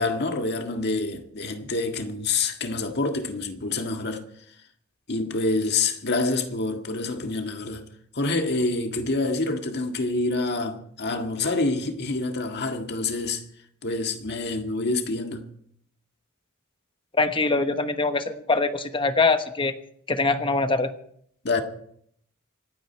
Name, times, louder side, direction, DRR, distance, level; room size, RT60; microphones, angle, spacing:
voice 1, 0.0-4.2 5.1-7.8 8.1-13.4 13.8-15.4 21.4-21.6, left 3 dB, 50° left, 1.7 m, -27 dB
voice 2, 17.1-19.7 20.1-20.9, left 3 dB, 25° left, 1.0 m, -23 dB
26.0 x 9.1 x 4.5 m
head